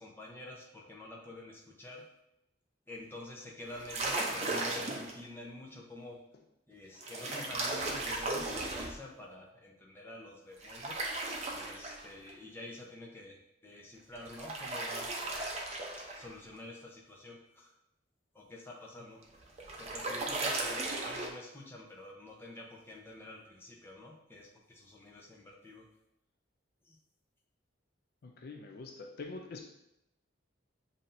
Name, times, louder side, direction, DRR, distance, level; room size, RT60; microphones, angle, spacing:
voice 1, 0.0-2.1 2.9-6.2 6.7-11.1 11.5-15.5 16.0-17.7 18.3-19.3 19.8-25.9 26.8-27.0, left 1 dB, 10° left, -2 dB, 0.7 m, -48 dB
sound 1, 3.7-5.2 7.0-9.0 10.6-12.3 14.1-16.3 19.2-21.3, right 2 dB, 35° right, 0.6 m, -36 dB
voice 2, 28.2-29.7, left 3 dB, 50° left, 3 dB, 0.4 m, -45 dB
7.2 x 2.7 x 2.6 m, 0.85 s
head